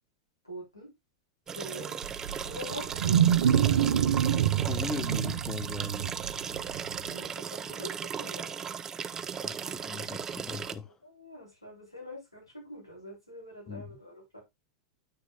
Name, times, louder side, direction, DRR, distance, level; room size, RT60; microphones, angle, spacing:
voice 1, 0.4-0.9 1.5-2.0 2.4-3.4 7.0-8.5 11.0-14.4, equal, 90° left, 3.4 m, -44 dB
sound 1, 1.5-10.8, right 7 dB, 20° right, 0.5 m, -36 dB
Wild animals, 2.0-7.1, right 9 dB, 65° right, 0.6 m, -26 dB
voice 2, 4.6-6.1 9.3-10.9 13.7-13.9, left 5 dB, 20° left, 0.9 m, -39 dB
9.2 x 6.1 x 2.2 m
figure-of-eight pair, 90°, 3 cm